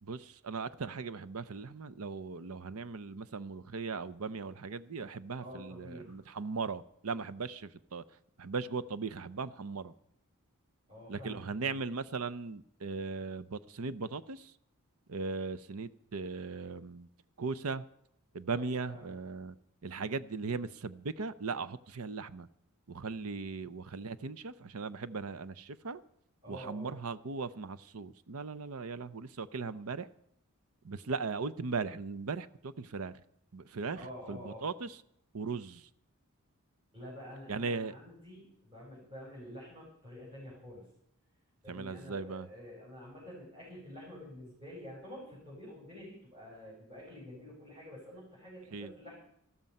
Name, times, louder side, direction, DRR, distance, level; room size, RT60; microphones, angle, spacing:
voice 1, 0.0-8.0 8.4-9.9 11.1-14.5 15.1-17.1 17.4-17.8 18.3-19.5 19.8-22.5 22.9-26.0 26.5-30.1 30.8-33.1 33.5-35.0 35.3-35.9 37.5-37.9 41.7-42.5 48.7-48.9, right 4 dB, 70° right, 0.7 m, -38 dB
voice 2, 5.4-6.1 10.9-11.8 18.5-19.1 26.4-27.0 33.9-34.7 36.9-40.9 41.6-49.2, left 1 dB, 25° right, 6.6 m, -48 dB
14.0 x 13.0 x 5.4 m
head